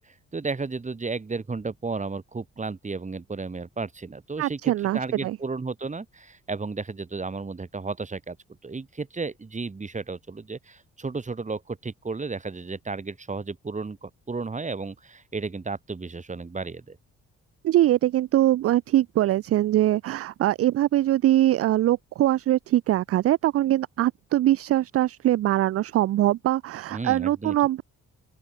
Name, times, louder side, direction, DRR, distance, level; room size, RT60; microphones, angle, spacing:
voice 1, 0.0-8.4 8.6-17.0 26.9-27.6, right 4 dB, 25° right, 2.9 m, -33 dB
voice 2, 4.4-5.4 17.6-27.8, right 14 dB, 50° right, 0.4 m, -22 dB
open air
cardioid pair, 90°, 30 cm